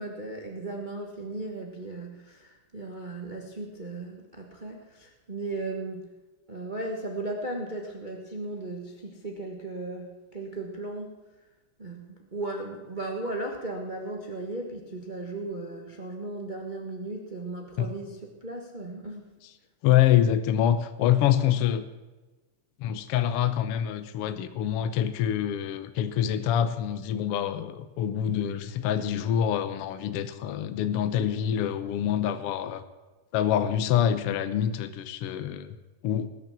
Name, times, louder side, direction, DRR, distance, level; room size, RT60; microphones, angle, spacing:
voice 1, 0.0-6.0 6.5-11.2 11.8-19.3, right 2 dB, 85° right, 2 dB, 0.4 m, -36 dB
voice 2, 19.8-21.8 22.8-32.8 33.3-35.8 36.0-36.3, left 10 dB, 80° left, 11 dB, 1.3 m, -26 dB
19.5 x 6.9 x 7.3 m, 1.2 s
omnidirectional pair, 3.6 m